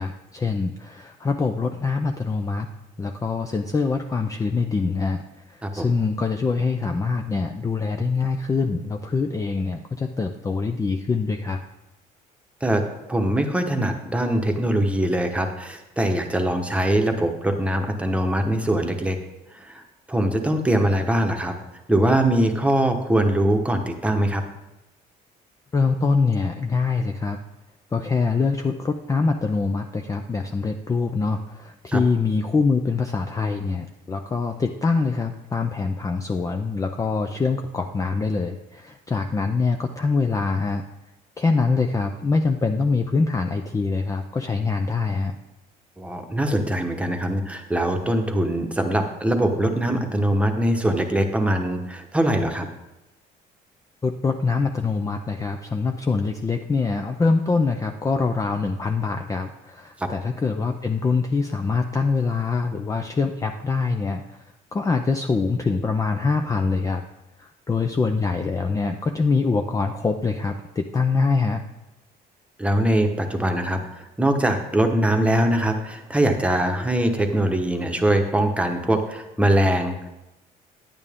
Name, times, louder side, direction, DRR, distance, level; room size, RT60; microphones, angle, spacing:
voice 1, 0.0-2.7 3.0-5.2 5.5-11.6 25.7-27.4 27.9-40.8 41.4-45.3 54.0-64.4 64.7-67.0 67.4-71.6, left 4 dB, 20° left, 5 dB, 0.5 m, -24 dB
voice 2, 12.6-19.2 19.5-19.8 20.1-21.6 21.9-24.4 31.9-32.0 46.0-52.7 60.0-60.1 72.6-80.1, right 1 dB, 5° right, 4 dB, 1.1 m, -22 dB
9.7 x 8.9 x 3.6 m, 0.95 s
cardioid pair, 110°, 17 cm